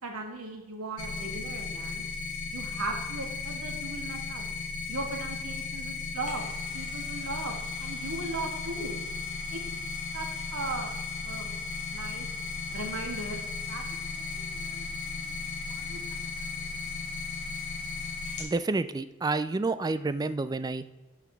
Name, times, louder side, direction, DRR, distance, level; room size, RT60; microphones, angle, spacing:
voice 1, 0.0-2.1 2.5-4.4 4.9-6.4 6.7-7.5 7.8-8.9 9.5-9.6 10.1-10.9 11.2-11.6 11.9-12.3 12.7-13.4 13.7-13.8 14.1-14.8 15.1-15.4 15.7-16.0 16.4-16.7, right 2 dB, 75° right, 2 dB, 1.7 m, -38 dB
sound 1, 1.0-18.4, left 4 dB, 70° left, 1.4 m, -36 dB
sound 2, 6.0-18.6 19.0-19.1, left 3 dB, 35° left, 2.8 m, -49 dB
voice 2, 18.4-20.8, right 3 dB, 20° right, 13 dB, 0.3 m, -29 dB
11.0 x 5.7 x 3.5 m, 1.1 s
head